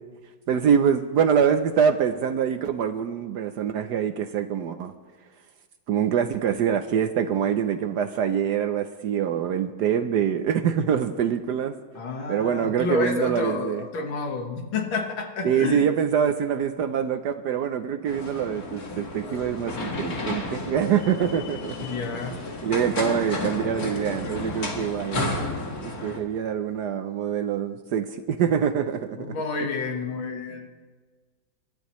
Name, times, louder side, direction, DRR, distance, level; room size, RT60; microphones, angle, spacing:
voice 1, 0.5-4.9 5.9-11.7 12.3-13.8 15.4-21.8 22.2-25.5 25.8-29.3, right 8 dB, 70° right, 9 dB, 1.1 m, -25 dB
voice 2, 11.9-15.9 21.8-22.4 29.2-30.7, left 3 dB, 75° left, 3 dB, 2.2 m, -29 dB
sound 1, 18.1-26.2, left 2 dB, 50° left, 2.2 m, -32 dB
28.0 x 13.0 x 3.1 m, 1.5 s
omnidirectional pair, 2.2 m